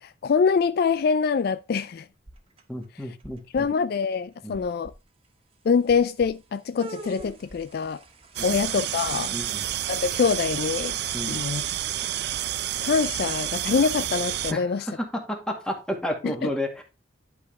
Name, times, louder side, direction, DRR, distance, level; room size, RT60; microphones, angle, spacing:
voice 1, 0.0-2.1 3.5-4.9 5.6-8.0 8.4-9.4 9.9-11.0 11.3-11.6 12.0-12.1 12.8-14.9 16.2-16.5, left 5 dB, 55° left, 0.3 m, -24 dB
sound 1, 2.3-2.8 3.2-3.7 4.1-4.2 4.5-4.9 5.9-6.3 6.8-8.6, right 2 dB, 30° right, 1.5 m, -42 dB
voice 2, 2.7-3.7 4.4-4.7 9.3-9.7 11.1-11.4 14.5-16.8, equal, 5° left, 1.9 m, -32 dB
sound 2, 8.4-14.5, right 12 dB, 60° right, 0.5 m, -29 dB
11.5 x 4.8 x 3.5 m
head